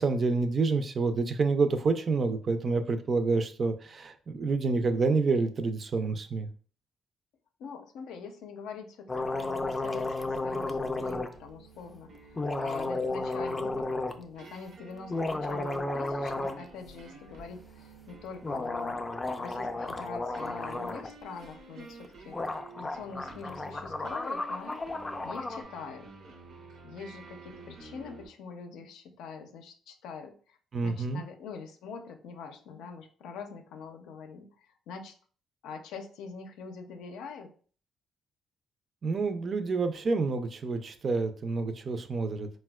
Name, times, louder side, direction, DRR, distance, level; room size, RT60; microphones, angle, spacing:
voice 1, 0.0-6.5 30.7-31.2 39.0-42.5, right 4 dB, 45° right, 9 dB, 0.4 m, -28 dB
voice 2, 7.6-19.0 19.4-24.8 25.2-26.1 26.8-35.2 35.6-37.5, left 5 dB, 90° left, 5 dB, 0.4 m, -44 dB
sound 1, 9.1-11.3 12.4-14.2 15.0-16.6 16.9-17.0 18.4-21.1 22.0-22.1 22.3-25.6, left 2 dB, 25° left, 0.4 m, -33 dB
sound 2, 11.3-28.3, right 4 dB, 80° right, 0.6 m, -51 dB
4.1 x 2.1 x 2.2 m, 0.43 s
cardioid pair, 90°, 0 cm